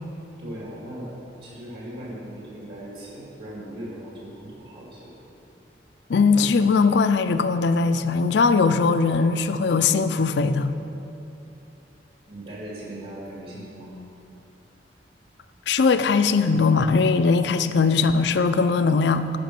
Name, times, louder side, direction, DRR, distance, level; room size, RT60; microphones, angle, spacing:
voice 1, 0.4-1.1 1.4-5.1 12.3-14.0, right 1 dB, 65° right, -5 dB, 2.1 m, -38 dB
voice 2, 6.1-10.7 15.7-19.3, left 4 dB, 70° left, 11 dB, 0.4 m, -20 dB
10.5 x 5.2 x 7.5 m, 2.9 s
head